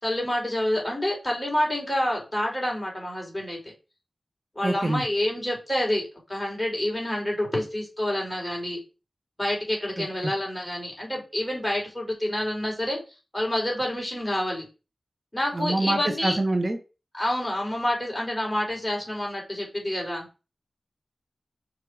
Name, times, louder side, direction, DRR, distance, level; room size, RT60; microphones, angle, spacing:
voice 1, 0.0-3.6 4.6-8.8 9.4-13.0 13.3-14.6 15.3-16.4 17.1-20.3, left 1 dB, 15° left, -1 dB, 4.0 m, -28 dB
voice 2, 4.6-5.0 10.0-10.1 15.5-16.8, right 2 dB, 35° right, 4 dB, 1.2 m, -25 dB
6.7 x 5.0 x 4.8 m, 0.31 s
wide cardioid pair, 80°, 0 cm